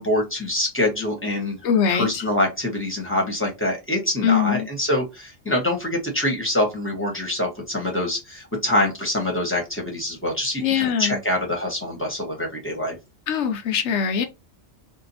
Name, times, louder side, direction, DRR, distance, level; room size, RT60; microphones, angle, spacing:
voice 1, 0.0-1.6 1.9-13.0, left 1 dB, 10° left, 1.0 m, -25 dB
voice 2, 1.6-2.2 4.2-4.7 10.6-11.2 13.3-14.2, left 8 dB, 70° left, 0.9 m, -22 dB
2.6 x 2.4 x 4.0 m
omnidirectional pair, 1.3 m